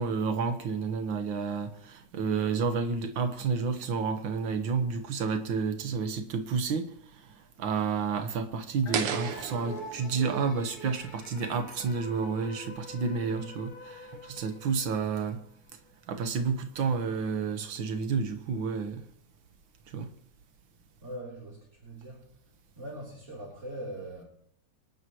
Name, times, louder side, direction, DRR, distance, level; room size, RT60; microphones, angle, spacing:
voice 1, 0.0-15.4 16.1-19.0 19.9-20.1, right 5 dB, 55° right, 1.5 m, -30 dB
sound 1, 8.9-15.4, equal, 40° left, 1.4 m, -45 dB
sound 2, 8.9-12.0, right 7 dB, 85° right, 2.4 m, -37 dB
voice 2, 13.1-13.5 21.0-22.4 22.7-24.2, right 1 dB, 25° right, 3.8 m, -42 dB
26.0 x 11.5 x 3.1 m
omnidirectional pair, 3.3 m